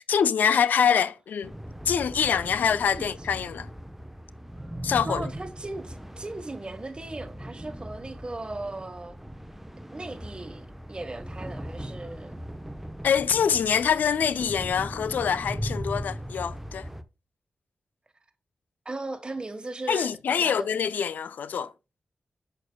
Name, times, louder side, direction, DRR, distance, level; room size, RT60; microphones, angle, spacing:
voice 1, 0.1-1.5 1.9-3.7 4.8-5.2 13.0-16.9 19.9-21.7, left 7 dB, 90° left, 0.4 m, -25 dB
sound 1, 1.4-17.0, equal, 5° right, 0.8 m, -39 dB
voice 2, 5.0-9.2 9.9-12.4 18.8-20.1 20.4-20.8, right 2 dB, 35° right, 1.3 m, -37 dB
6.6 x 6.3 x 2.2 m
cardioid pair, 50°, 3 cm